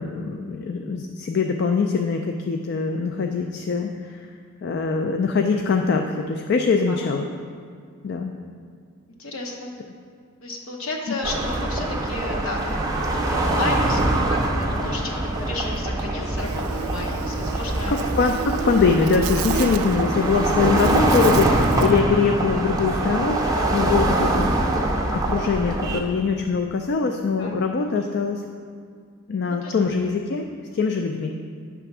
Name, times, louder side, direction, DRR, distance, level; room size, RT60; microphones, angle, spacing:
voice 1, 0.0-4.3 4.6-7.3 8.0-8.3 17.9-24.5 25.0-28.4 29.3-30.4 30.7-31.3, left 4 dB, 50° left, 4 dB, 0.3 m, -23 dB
voice 2, 9.2-9.7 10.4-14.0 14.3-17.9 19.7-19.8 27.4-27.6 29.4-29.7, left 2 dB, 75° left, 0 dB, 0.9 m, -33 dB
sound 1, 11.2-26.0, right 2 dB, 15° right, 0.6 m, -23 dB
Buzz, 16.4-22.0, right 7 dB, 90° right, 0.3 m, -33 dB
9.0 x 3.4 x 5.9 m, 2.2 s
head